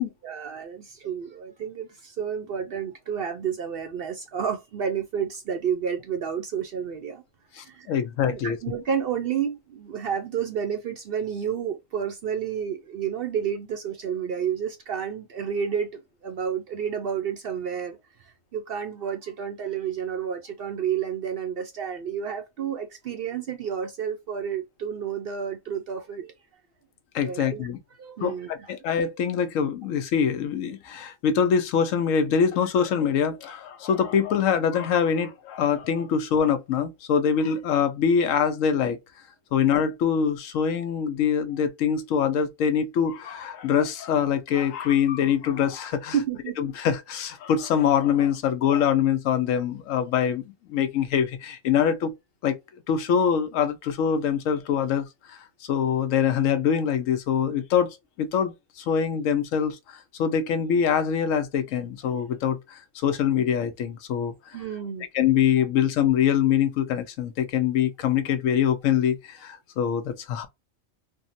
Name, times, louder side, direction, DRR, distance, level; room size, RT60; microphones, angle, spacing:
voice 1, 0.2-7.2 7.6-7.9 8.3-26.3 27.2-27.7 28.0-28.7 46.1-46.6 64.5-65.1, right 8 dB, 60° right, 0.6 m, -30 dB
voice 2, 7.6-8.6 27.1-27.8 28.2-39.0 39.5-46.1 46.6-50.4 50.7-52.1 52.4-52.6 52.9-64.6 65.1-70.5, left 8 dB, 80° left, 1.0 m, -24 dB
3.5 x 2.0 x 2.5 m
omnidirectional pair, 1.4 m